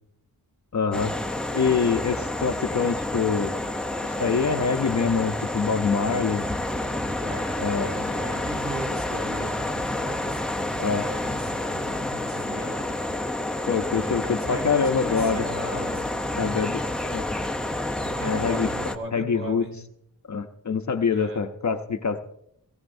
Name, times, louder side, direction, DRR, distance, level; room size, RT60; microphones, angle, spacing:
voice 1, 0.7-1.2 1.5-3.6 4.0-6.5 7.6-8.1 10.8-11.1 13.7-15.5 16.3-16.8 17.1-17.2 18.2-18.7 19.1-19.6 20.3-22.2, left 5 dB, 45° left, 7 dB, 0.7 m, -25 dB
sound 1, 0.9-19.0, left 1 dB, ahead, 0.6 m, -29 dB
voice 2, 7.2-13.0 13.9-17.1 18.0-19.7 21.1-21.4, right 1 dB, 35° right, -1 dB, 4.3 m, -38 dB
18.0 x 17.0 x 2.6 m, 0.75 s
wide cardioid pair, 160°, 39 cm